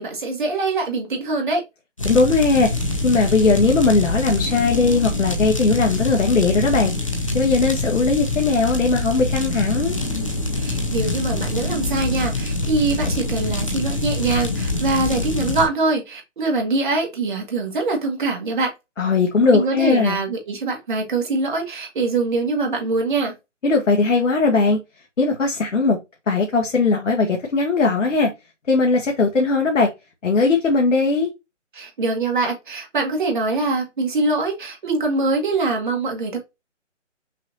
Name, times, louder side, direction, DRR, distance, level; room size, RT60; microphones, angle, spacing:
voice 1, 0.0-1.6 10.6-18.7 19.5-23.3 31.7-36.4, right 3 dB, 40° right, 1.5 m, -23 dB
voice 2, 2.0-2.7 3.0-6.9 7.3-10.0 19.0-20.2 23.6-24.8 25.2-26.0 26.3-28.3 28.7-29.9 30.2-31.3, left 3 dB, 75° left, 1.2 m, -19 dB
sound 1, 2.0-15.7, left 2 dB, 25° left, 0.5 m, -25 dB
5.7 x 2.6 x 2.8 m
hypercardioid pair, 165°, 37 cm